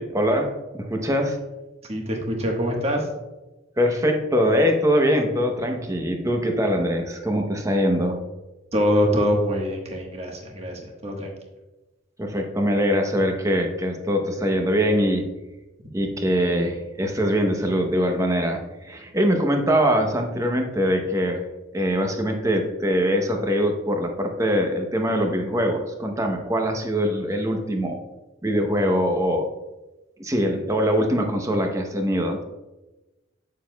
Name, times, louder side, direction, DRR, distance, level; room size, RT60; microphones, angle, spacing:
voice 1, 0.0-1.4 3.8-8.2 12.2-15.3 15.9-21.4 21.7-28.0 28.4-29.5 30.2-32.4, equal, 15° right, 3 dB, 0.8 m, -23 dB
voice 2, 1.8-3.1 8.7-11.3, equal, 30° right, 1 dB, 1.3 m, -24 dB
9.7 x 6.7 x 2.3 m, 1.1 s
head